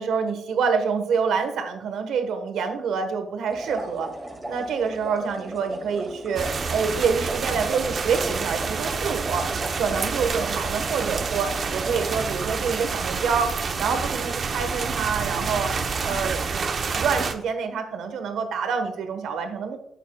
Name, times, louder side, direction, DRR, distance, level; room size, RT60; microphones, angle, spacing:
voice 1, 0.0-4.1 4.5-15.7 16.0-19.8, right 5 dB, 80° right, 7 dB, 1.1 m, -27 dB
sound 1, 3.5-12.3, right 1 dB, 10° right, 2.0 m, -37 dB
sound 2, 6.4-17.3, right 5 dB, 50° right, 0.7 m, -28 dB
11.0 x 8.2 x 2.2 m, 0.79 s
cardioid pair, 90°, 0 cm